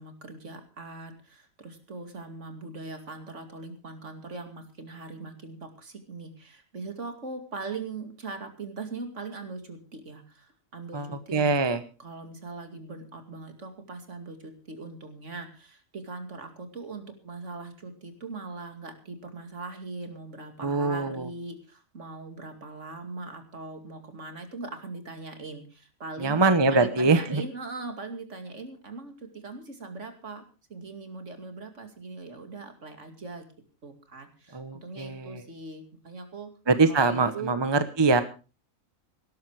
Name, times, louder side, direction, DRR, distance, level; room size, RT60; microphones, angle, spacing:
voice 1, 0.0-11.5 12.0-26.4 26.7-30.4 30.7-33.5 33.8-36.5 36.9-37.6, right 3 dB, 60° right, 7 dB, 2.8 m, -40 dB
voice 2, 10.9-11.8 20.6-21.3 26.2-27.4 34.5-35.4 36.7-38.2, right 3 dB, 20° right, 11 dB, 1.0 m, -23 dB
18.0 x 12.0 x 4.7 m, 0.35 s
omnidirectional pair, 1.4 m